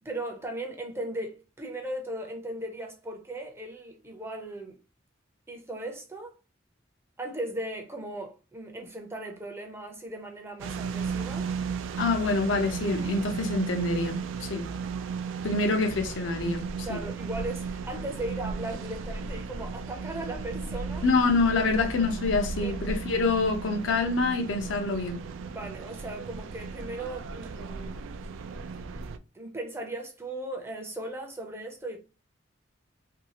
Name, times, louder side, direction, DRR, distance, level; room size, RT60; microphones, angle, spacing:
voice 1, 0.0-4.8 5.5-6.3 7.2-11.5 16.8-21.0 22.6-22.8 25.4-28.0 28.7-29.0 29.3-32.0, right 1 dB, 15° right, 0.5 m, -37 dB
sound 1, 10.6-29.2, right 5 dB, 85° right, 0.3 m, -35 dB
voice 2, 12.0-14.6 15.4-17.0 21.0-25.2, left 3 dB, 75° left, 0.6 m, -26 dB
2.7 x 2.3 x 2.8 m
head